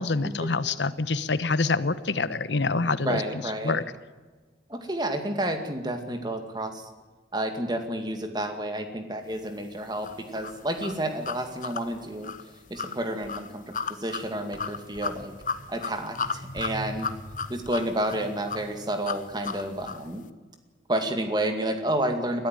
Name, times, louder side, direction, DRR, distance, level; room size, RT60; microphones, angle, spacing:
voice 1, 0.0-3.8, left 3 dB, 85° left, 14 dB, 1.0 m, -26 dB
voice 2, 3.0-3.8 4.7-6.8 7.3-12.3 12.7-15.3 15.7-17.1 17.5-20.2 20.9-22.5, right 1 dB, 25° right, 6 dB, 2.2 m, -30 dB
sound 1, 10.0-20.1, left 5 dB, 45° left, 1.0 m, -35 dB
21.5 x 14.0 x 9.1 m, 1.4 s
head